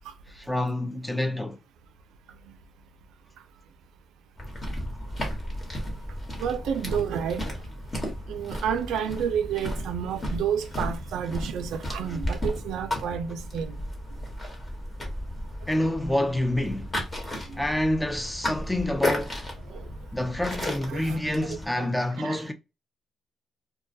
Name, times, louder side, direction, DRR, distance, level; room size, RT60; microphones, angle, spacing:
voice 1, 0.4-1.6 15.7-16.9 17.6-19.4 20.1-22.5, left 1 dB, 10° left, 0.5 m, -27 dB
sound 1, 4.4-21.7, left 1 dB, 30° left, 1.2 m, -34 dB
voice 2, 6.4-7.5 8.3-13.8 17.5-17.6 19.7-19.8 20.9-21.9 22.2-22.4, right 8 dB, 85° right, 0.3 m, -30 dB
2.2 x 2.2 x 2.6 m
cardioid pair, 90°, 0 cm